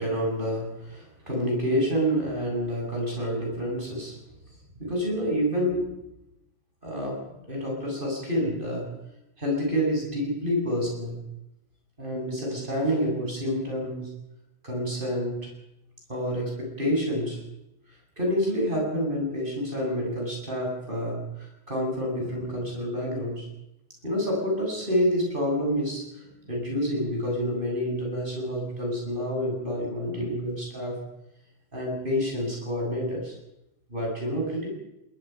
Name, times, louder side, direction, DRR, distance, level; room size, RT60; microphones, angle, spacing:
voice 1, 0.0-4.2 4.8-5.9 6.8-8.9 9.4-11.2 12.0-14.1 14.6-15.5 16.1-17.4 18.2-23.5 24.0-31.0 31.7-33.3 33.9-34.7, equal, 20° right, -1 dB, 8.2 m, -28 dB
21.5 x 20.5 x 6.0 m, 0.90 s
omnidirectional pair, 2.4 m